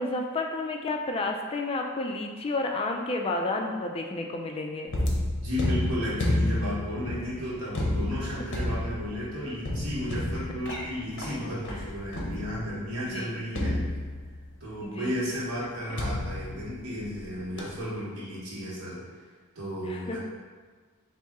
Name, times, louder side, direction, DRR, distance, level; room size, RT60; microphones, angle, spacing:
voice 1, 0.0-4.9 13.1-13.4 14.8-15.3 19.8-20.2, left 2 dB, 25° left, 2 dB, 0.3 m, -31 dB
sound 1, 4.9-12.8 13.5-14.5 16.0-17.2 17.6-17.9, left 1 dB, 55° left, 0.7 m, -31 dB
voice 2, 5.4-13.9 14.6-19.1 19.5-20.2, equal, 85° right, -7 dB, 1.4 m, -34 dB
4.3 x 2.6 x 3.6 m, 1.5 s
head